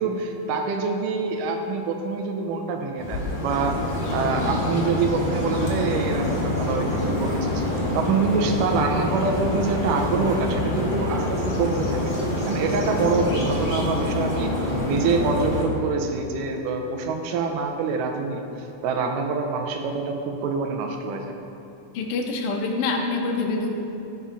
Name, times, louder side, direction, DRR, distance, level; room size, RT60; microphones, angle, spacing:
voice 1, 0.0-3.8 4.1-7.6 7.9-12.0 12.5-21.4, right 4 dB, 85° right, 4 dB, 2.2 m, -26 dB
sound 1, 3.0-15.6, left 2 dB, 65° left, 0.4 m, -26 dB
voice 2, 21.9-23.7, left 3 dB, 90° left, 1 dB, 1.2 m, -25 dB
14.5 x 5.5 x 2.5 m, 2.9 s
omnidirectional pair, 3.7 m